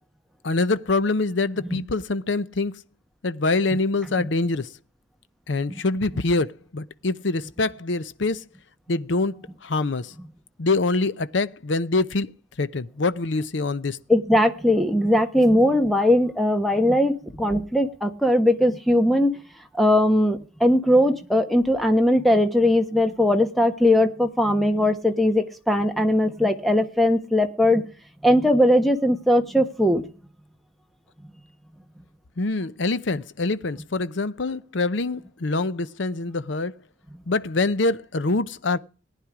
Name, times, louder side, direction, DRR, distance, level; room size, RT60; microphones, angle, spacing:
voice 1, 0.4-2.8 3.2-4.7 5.5-8.4 8.9-10.1 10.6-12.3 12.6-14.0 32.4-36.7 37.3-38.8, left 3 dB, 80° left, 0.7 m, -25 dB
voice 2, 14.1-19.3 19.8-27.8 28.2-30.1, left 1 dB, ahead, 1.2 m, -20 dB
18.0 x 10.0 x 4.9 m
head